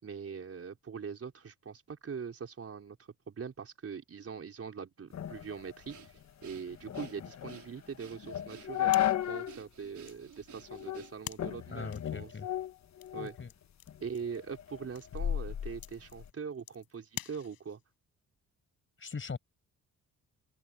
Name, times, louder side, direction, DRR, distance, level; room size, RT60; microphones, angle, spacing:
voice 1, 0.0-3.0 3.3-8.9 9.3-12.3 13.1-13.4 14.0-17.8, right 6 dB, 45° right, 4.4 m, -42 dB
sound 1, 5.1-9.6 10.0-10.1 10.7-11.1 11.4-13.5 13.9-16.3, left 12 dB, 55° left, 1.3 m, -35 dB
Breathing, 5.9-11.4, right 8 dB, 60° right, 3.9 m, -54 dB
sound 2, 8.9-17.9, left 13 dB, 90° left, 5.1 m, -49 dB
voice 2, 11.7-12.5 13.2-13.5 19.0-19.4, left 5 dB, 35° left, 6.2 m, -41 dB
cardioid pair, 100°, 33 cm